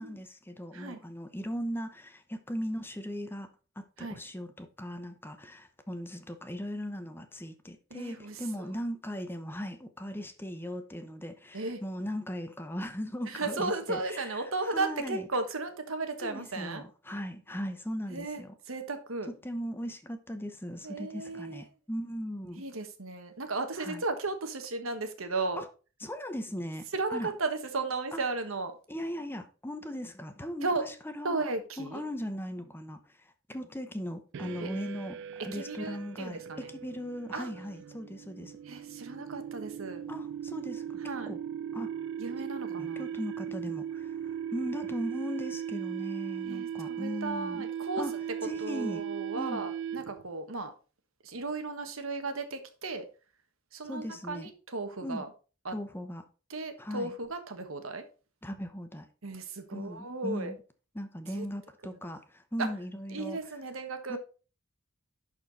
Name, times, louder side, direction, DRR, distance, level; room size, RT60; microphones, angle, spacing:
voice 1, 0.0-3.5 3.8-15.3 16.2-18.5 19.3-22.6 23.8-24.0 25.6-25.7 26.0-27.3 28.1-28.2 28.9-31.5 31.8-38.6 40.1-41.4 41.7-41.9 42.8-47.7 48.0-48.1 48.4-49.0 49.3-49.6 53.8-54.5 55.0-55.2 55.7-56.2 56.8-57.1 58.4-59.1 59.7-60.6 60.9-63.4 64.1-64.2, equal, 10° left, 0.8 m, -38 dB
voice 2, 7.9-8.4 11.5-11.8 13.2-16.8 18.1-19.3 20.8-21.6 22.5-25.6 26.9-28.7 30.6-30.8 31.2-32.0 34.6-34.7 35.5-36.7 37.3-37.5 38.6-40.0 41.0-41.3 42.2-43.1 46.4-48.0 48.6-50.7 51.2-53.1 53.7-55.3 55.6-55.7 56.5-58.0 59.2-60.5 61.3-61.5 62.6-62.7 63.1-64.2, right 3 dB, 80° right, 1.4 m, -35 dB
sound 1, 34.3-50.3, right 9 dB, 60° right, 0.3 m, -38 dB
11.0 x 4.4 x 4.1 m
head